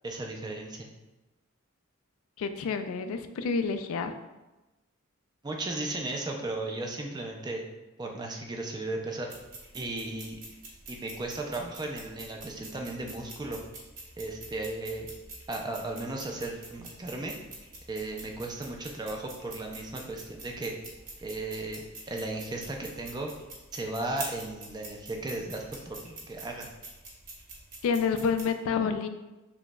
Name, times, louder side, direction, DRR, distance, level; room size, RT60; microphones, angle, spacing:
voice 1, 0.0-0.9 5.4-7.6 8.0-9.3 9.7-10.4 10.9-13.6 14.2-15.1 15.5-17.3 17.9-20.7 21.2-23.3 23.7-26.7, right 2 dB, 20° right, 1 dB, 0.4 m, -35 dB
voice 2, 2.4-4.1 27.8-29.1, left 5 dB, 75° left, 9 dB, 0.3 m, -28 dB
sound 1, 9.3-28.4, right 2 dB, 40° right, 0.9 m, -46 dB
6.0 x 2.0 x 2.2 m, 1.1 s
head